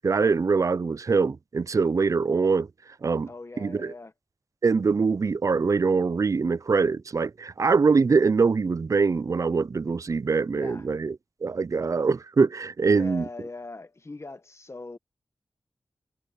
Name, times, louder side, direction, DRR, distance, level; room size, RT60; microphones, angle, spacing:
voice 1, 0.0-2.7 3.0-3.3 3.6-3.9 4.6-11.2 11.4-13.2, right 4 dB, 40° right, 0.3 m, -23 dB
voice 2, 3.3-4.1 10.5-10.9 12.9-15.0, left 3 dB, 30° left, 1.2 m, -41 dB
wide cardioid pair, 90°, 9 cm